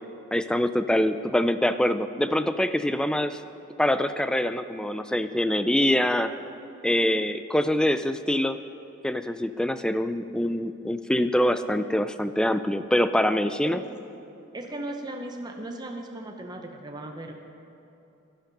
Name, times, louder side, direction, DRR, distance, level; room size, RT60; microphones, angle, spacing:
voice 1, 0.3-3.4 3.8-6.3 6.8-8.6 9.0-13.8, left 1 dB, 5° left, 11 dB, 0.3 m, -24 dB
voice 2, 14.5-17.4, right 1 dB, 20° right, 3 dB, 0.7 m, -37 dB
12.0 x 11.5 x 5.3 m, 2.8 s
head